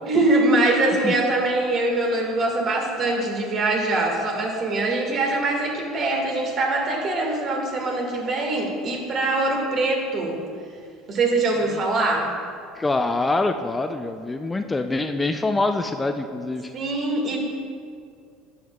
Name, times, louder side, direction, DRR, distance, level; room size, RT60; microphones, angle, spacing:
voice 1, 0.0-10.4 11.1-12.3 16.7-17.4, right 2 dB, 45° right, 0 dB, 1.8 m, -23 dB
voice 2, 12.8-16.7, left 2 dB, 15° left, 7 dB, 0.4 m, -25 dB
10.5 x 7.2 x 2.3 m, 2.2 s
supercardioid pair, 85°, 0 cm